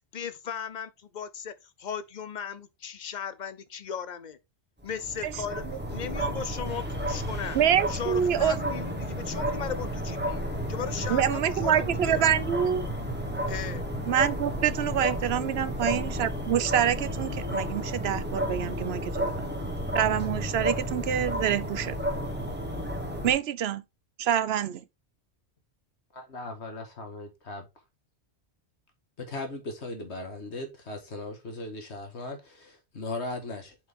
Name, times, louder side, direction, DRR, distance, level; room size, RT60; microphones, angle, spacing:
voice 1, 0.1-4.4 4.8-7.6 7.9-10.4 10.7-12.2 13.5-13.8, left 7 dB, 45° left, 0.8 m, -37 dB
sound 1, 4.8-23.3, equal, 10° right, 1.5 m, -32 dB
voice 2, 7.5-8.6 11.1-12.9 14.1-19.3 19.9-22.0 23.2-23.8 24.2-24.8, right 9 dB, 70° right, 0.8 m, -26 dB
voice 3, 26.1-27.7 29.2-33.8, left 2 dB, 80° left, 1.9 m, -38 dB
7.7 x 4.8 x 3.5 m
omnidirectional pair, 1.1 m